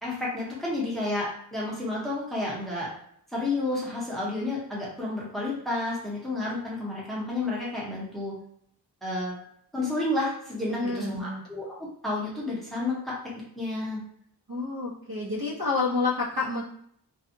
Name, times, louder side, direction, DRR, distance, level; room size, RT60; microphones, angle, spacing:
voice 1, 0.0-2.9 3.3-8.3 9.0-9.4 9.7-11.7 12.0-13.1 13.6-14.0, left 2 dB, ahead, -6 dB, 0.8 m, -31 dB
voice 2, 10.7-11.4 14.5-16.6, left 3 dB, 60° right, -5 dB, 1.0 m, -29 dB
2.6 x 2.3 x 2.7 m, 0.66 s
wide cardioid pair, 85°, 40 cm